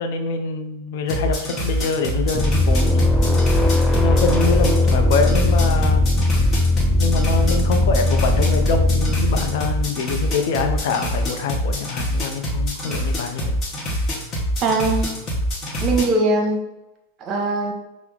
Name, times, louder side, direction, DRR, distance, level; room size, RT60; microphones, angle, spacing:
voice 1, 0.0-3.2 4.0-6.1 7.0-13.6, left 4 dB, 55° left, 5 dB, 0.5 m, -25 dB
sound 1, 1.1-16.1, equal, 30° left, 1.1 m, -25 dB
sound 2, 2.3-9.8, left 2 dB, 5° left, 0.5 m, -19 dB
voice 2, 14.6-15.1 15.8-16.6 17.2-17.7, right 2 dB, 30° right, 3 dB, 0.8 m, -20 dB
5.6 x 2.0 x 3.7 m, 0.93 s
figure-of-eight pair, 90°, 0 cm